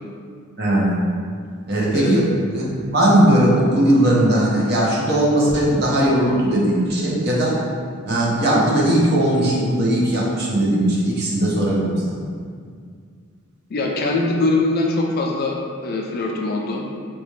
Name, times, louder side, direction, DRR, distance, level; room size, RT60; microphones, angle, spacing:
voice 1, 0.6-1.0 1.7-7.6 8.0-12.3, right 1 dB, 50° right, -4 dB, 0.7 m, -18 dB
voice 2, 1.9-2.3 13.7-16.9, left 2 dB, 45° left, 0 dB, 0.3 m, -22 dB
4.0 x 2.2 x 3.2 m, 2.1 s
head